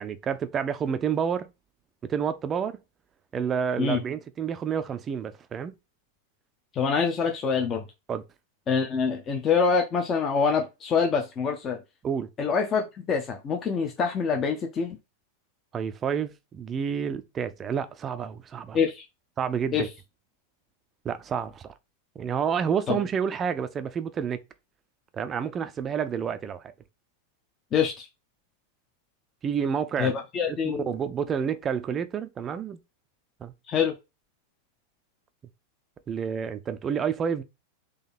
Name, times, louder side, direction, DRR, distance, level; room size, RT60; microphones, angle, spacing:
voice 1, 0.0-1.5 2.0-2.8 3.3-5.7 8.1-8.2 12.0-12.3 15.7-18.8 19.4-19.9 21.0-21.7 22.2-24.4 25.1-26.7 29.4-30.2 30.5-32.8 33.4-33.5 36.1-37.4, right 7 dB, 25° right, 0.5 m, -29 dB
voice 2, 6.7-7.8 8.7-11.8 12.4-15.0 18.7-19.0 19.7-19.9 22.9-23.0 27.7-28.1 30.0-30.9 33.7-33.9, left 6 dB, 25° left, 0.8 m, -25 dB
3.9 x 2.9 x 4.1 m
figure-of-eight pair, 90°, 0 cm